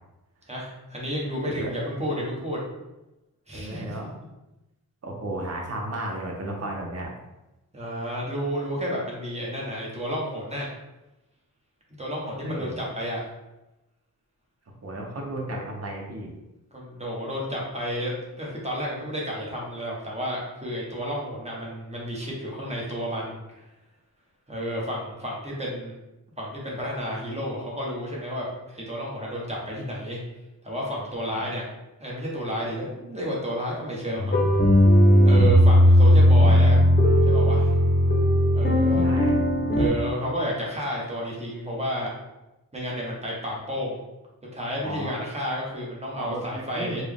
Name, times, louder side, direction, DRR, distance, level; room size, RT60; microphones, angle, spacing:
voice 1, 0.5-2.6 3.5-4.0 7.7-10.7 11.9-13.2 16.7-23.6 24.5-25.9 26.4-30.2 30.6-31.7 32.0-34.4 35.2-36.9 37.3-37.7 38.5-39.0 39.7-42.1 42.7-44.0 44.5-47.0, equal, 20° right, -4 dB, 1.3 m, -31 dB
voice 2, 3.5-4.0 5.0-7.1 12.4-12.7 14.8-16.3 39.0-39.4 44.8-45.1 46.1-47.0, right 1 dB, 45° right, -1 dB, 1.0 m, -33 dB
sound 1, 34.2-39.9, equal, 30° left, 0.6 m, -17 dB
4.4 x 2.4 x 3.5 m, 0.99 s
wide cardioid pair, 85°, 36 cm